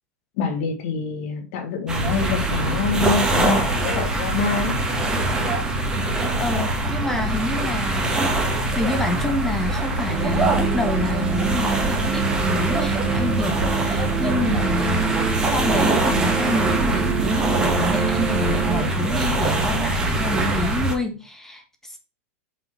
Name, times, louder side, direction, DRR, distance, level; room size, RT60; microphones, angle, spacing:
voice 1, 0.4-4.7, left 5 dB, 55° left, 2 dB, 1.8 m, -25 dB
sound 1, 1.9-20.9, right 2 dB, 10° right, 1.5 m, -23 dB
voice 2, 6.0-22.0, left 2 dB, 5° left, 4 dB, 1.4 m, -28 dB
sound 2, 10.1-18.8, right 7 dB, 30° right, 1.0 m, -27 dB
6.1 x 3.7 x 5.4 m, 0.33 s
supercardioid pair, 140°, 8 cm